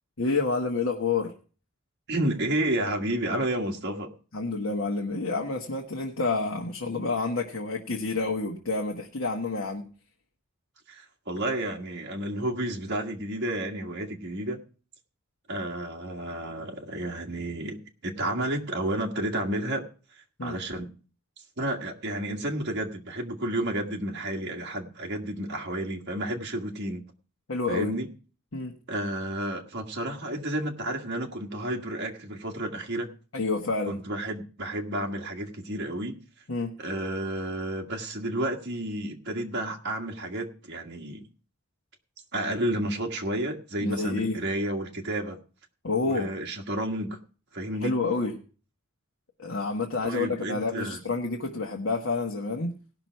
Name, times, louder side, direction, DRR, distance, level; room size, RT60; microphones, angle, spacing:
voice 1, 0.2-1.3 4.3-9.9 20.4-20.5 27.5-28.0 28.5-28.7 33.3-34.0 36.5-36.7 43.8-44.4 45.8-46.3 47.8-48.4 49.4-52.7, left 3 dB, 65° left, 1 dB, 1.3 m, -29 dB
voice 2, 2.1-4.1 10.9-14.6 15.5-19.9 20.4-20.9 21.6-27.0 27.7-28.1 28.9-33.1 33.9-36.2 36.8-41.2 42.3-45.4 46.0-47.2 47.5-47.9 50.0-51.0, right 1 dB, 50° right, 2 dB, 1.7 m, -31 dB
18.0 x 6.1 x 4.6 m, 0.38 s
head